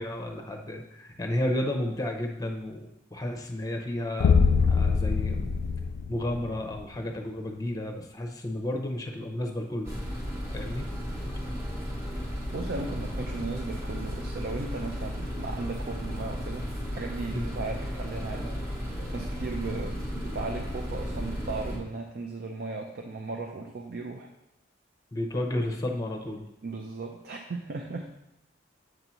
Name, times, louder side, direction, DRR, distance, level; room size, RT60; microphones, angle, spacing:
voice 1, 0.0-4.4 4.7-5.5 6.1-10.0 10.5-10.9 11.3-11.4 17.3-17.5 25.1-26.4, left 1 dB, 20° left, 2 dB, 0.7 m, -32 dB
sound 1, 4.2-6.8, left 5 dB, 55° left, 0.3 m, -23 dB
sound 2, 9.8-21.8, equal, 15° right, 1.2 m, -34 dB
voice 2, 12.5-16.7 16.9-18.6 19.1-24.3 26.6-28.2, right 3 dB, 55° right, 3 dB, 0.5 m, -36 dB
7.8 x 2.7 x 5.9 m, 0.89 s
head